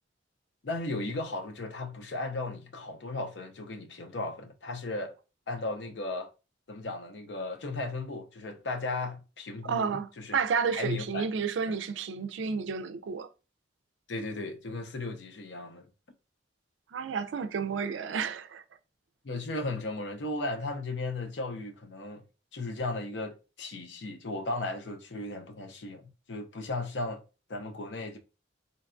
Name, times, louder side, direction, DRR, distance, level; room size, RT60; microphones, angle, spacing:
voice 1, 0.6-5.1 5.5-6.3 6.7-10.4 10.7-11.2 11.7-11.8 14.1-15.9 19.2-22.2 22.5-27.2 27.5-28.2, left 2 dB, 65° left, 0.6 m, -36 dB
voice 2, 9.7-13.3 16.9-18.6, right 6 dB, 80° right, 0.4 m, -31 dB
3.8 x 2.2 x 2.4 m
head